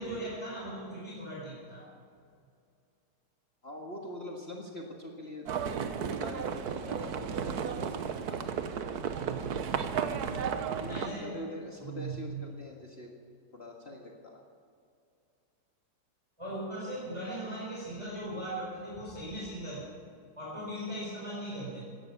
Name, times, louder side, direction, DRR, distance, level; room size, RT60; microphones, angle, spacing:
voice 1, 0.0-1.9 9.2-9.5 10.9-11.4 11.8-12.4 16.4-19.9 20.4-22.0, right 1 dB, 15° right, -6 dB, 4.7 m, -39 dB
voice 2, 3.6-5.5 5.8-8.0 8.3-8.6 10.8-13.1 13.5-14.4 21.3-21.4, left 1 dB, 35° left, -1 dB, 1.9 m, -43 dB
Livestock farm animals working animals, 5.5-11.1, right 7 dB, 65° right, 1.4 m, -33 dB
16.0 x 12.0 x 7.1 m, 2.4 s
omnidirectional pair, 1.9 m